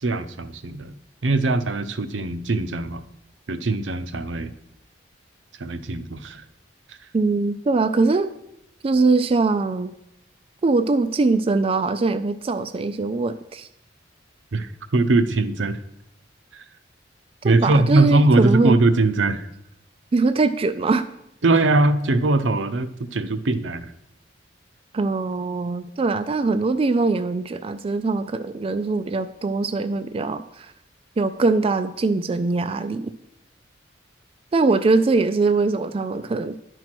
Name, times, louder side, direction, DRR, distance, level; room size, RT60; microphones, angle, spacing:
voice 1, 0.0-0.9 1.2-3.0 3.5-4.5 5.6-6.4 6.9-7.0 14.5-15.8 16.5-16.6 17.4-19.5 21.4-23.9, right 2 dB, 75° right, 11 dB, 0.6 m, -21 dB
voice 2, 7.1-8.3 8.8-9.9 10.6-13.7 17.4-18.8 20.1-21.1 24.9-30.7 31.2-33.1 34.5-36.6, right 3 dB, 30° right, 9 dB, 0.3 m, -22 dB
10.5 x 4.6 x 6.0 m, 0.79 s
head